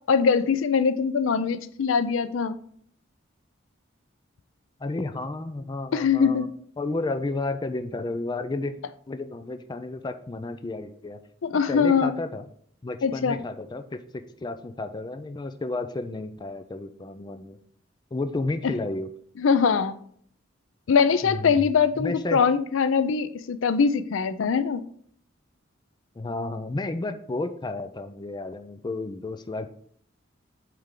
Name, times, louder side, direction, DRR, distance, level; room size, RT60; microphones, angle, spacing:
voice 1, 0.1-2.6 5.9-6.5 11.4-12.1 13.0-13.4 19.4-20.0 20.9-24.8, left 6 dB, 80° left, 0.4 m, -22 dB
voice 2, 4.8-6.5 6.8-8.8 9.1-11.2 11.5-12.4 12.8-17.6 18.1-19.1 21.2-21.6 22.0-22.4 26.2-29.7, left 2 dB, 20° left, 0.4 m, -32 dB
8.7 x 3.4 x 3.7 m
head